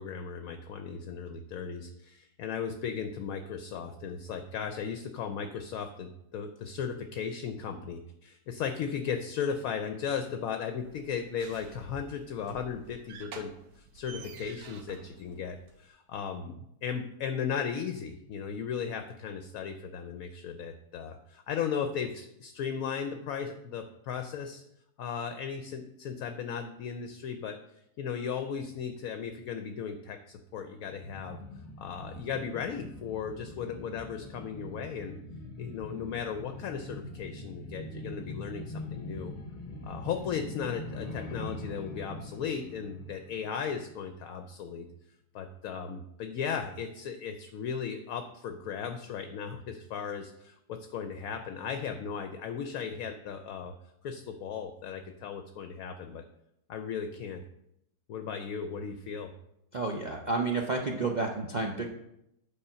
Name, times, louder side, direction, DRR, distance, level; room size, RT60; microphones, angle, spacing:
voice 1, 0.0-24.6 25.0-27.6 28.0-31.4 31.8-35.2 35.6-39.3 39.8-44.9 45.3-53.7 54.0-56.2 56.7-57.4 58.1-59.3, left 7 dB, 65° left, 7 dB, 0.9 m, -36 dB
sound 1, 10.8-15.9, right 5 dB, 80° right, 1.5 m, -50 dB
sound 2, 30.9-44.1 44.4-44.5, left 2 dB, 40° left, 0.5 m, -43 dB
voice 2, 59.7-61.9, right 3 dB, 65° right, 0 dB, 0.4 m, -30 dB
8.6 x 4.2 x 5.6 m, 0.81 s
omnidirectional pair, 1.9 m